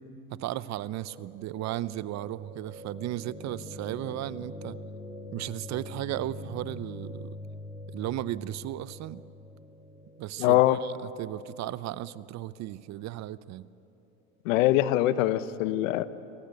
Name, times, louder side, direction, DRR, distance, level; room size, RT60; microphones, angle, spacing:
voice 1, 0.3-4.8 5.3-7.4 7.9-9.2 10.2-13.7, right 14 dB, 45° right, 19 dB, 0.6 m, -35 dB
sound 1, 0.8-12.9, left 1 dB, 15° right, 5.7 m, -44 dB
voice 2, 10.4-10.8 14.4-16.0, left 15 dB, 80° left, 15 dB, 1.0 m, -23 dB
23.5 x 16.5 x 8.3 m, 2.9 s
supercardioid pair, 95°, 39 cm